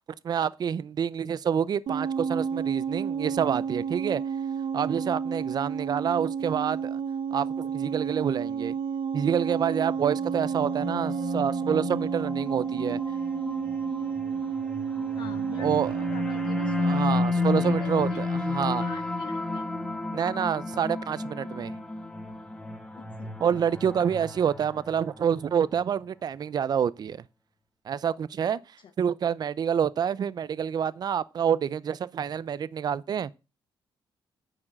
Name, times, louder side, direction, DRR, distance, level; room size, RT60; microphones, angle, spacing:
voice 1, 0.2-4.2 4.7-7.0 7.3-8.7 9.1-13.0 15.6-15.9 16.8-18.8 20.1-21.7 23.4-27.2 27.8-28.6 29.0-33.3, right 8 dB, 50° right, 0.6 m, -27 dB
sound 1, 1.9-17.2, right 7 dB, 70° right, 0.9 m, -31 dB
sound 2, 10.1-25.5, left 3 dB, 10° left, 1.4 m, -32 dB
voice 2, 15.1-18.2 18.8-19.7 22.9-23.4, left 8 dB, 60° left, 0.9 m, -44 dB
9.7 x 4.8 x 7.6 m
cardioid pair, 115°, 9 cm